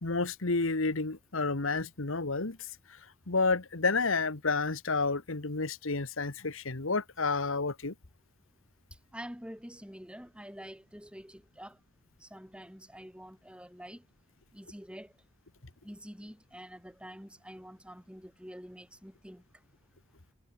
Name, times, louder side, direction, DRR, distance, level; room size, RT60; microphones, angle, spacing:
voice 1, 0.0-2.6 3.3-7.9, left 3 dB, 80° left, 1.6 m, -30 dB
voice 2, 9.1-11.8 12.2-14.0 14.5-15.1 15.8-19.4, equal, 5° right, 6.8 m, -47 dB
head